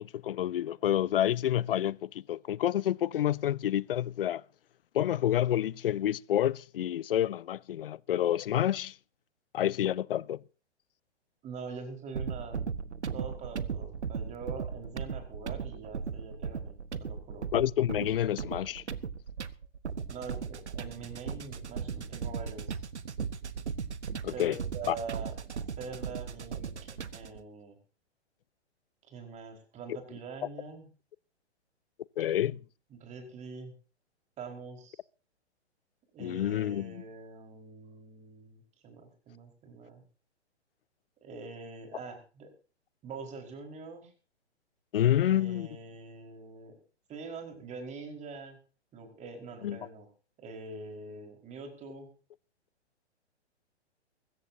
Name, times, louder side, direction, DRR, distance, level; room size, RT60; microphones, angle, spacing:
voice 1, 0.0-4.4 4.9-9.0 9.5-10.4 17.5-18.8 24.2-24.6 24.9-25.0 32.2-32.6 36.2-37.0 44.9-45.7 49.6-49.8, left 11 dB, 55° left, 0.7 m, -28 dB
voice 2, 11.4-12.7 13.1-17.5 20.0-22.8 24.3-25.3 25.8-26.7 27.1-27.8 29.1-30.9 32.9-33.7 34.4-35.0 36.1-40.0 41.2-42.5 43.0-44.1 45.2-46.8 47.1-48.6 48.9-50.1 50.4-52.1, right 4 dB, 20° right, 4.7 m, -44 dB
sound 1, 12.1-27.4, right 6 dB, 75° right, 1.2 m, -37 dB
24.0 x 14.0 x 2.8 m
figure-of-eight pair, 120°, 34 cm